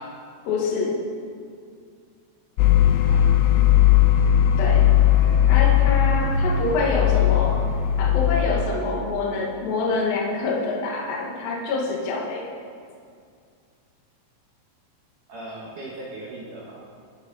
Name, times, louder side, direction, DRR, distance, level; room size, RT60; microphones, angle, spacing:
voice 1, 0.5-1.0 4.6-4.9 5.5-7.6 8.0-12.5, left 3 dB, 60° left, -3 dB, 3.1 m, -26 dB
sound 1, 2.6-8.6, left 10 dB, 85° left, 2.9 m, -18 dB
voice 2, 5.1-5.7 15.3-16.8, right 2 dB, 60° right, -4 dB, 2.3 m, -39 dB
19.5 x 10.0 x 4.1 m, 2.3 s
omnidirectional pair, 5.5 m